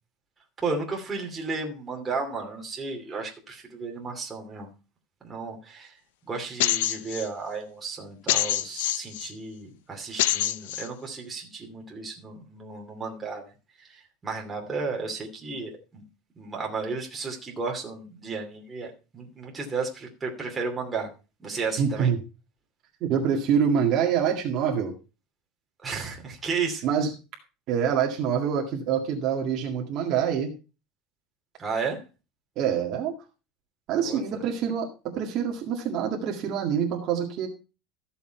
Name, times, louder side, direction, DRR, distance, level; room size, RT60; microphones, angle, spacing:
voice 1, 0.6-4.7 5.2-6.0 6.3-13.5 13.8-16.0 16.4-21.1 21.4-22.1 25.8-26.8 31.6-32.0 34.0-34.2, right 4 dB, 15° right, 0 dB, 2.6 m, -33 dB
sound 1, 6.6-7.3 8.3-9.3 10.2-10.9, left 13 dB, 90° left, 0.7 m, -25 dB
voice 2, 21.8-22.2 23.0-24.9 26.8-27.1 27.7-30.5 32.6-33.1 33.9-37.5, right 7 dB, 40° right, 0 dB, 2.0 m, -25 dB
14.0 x 7.0 x 4.5 m, 0.32 s
cardioid pair, 165°, 0 cm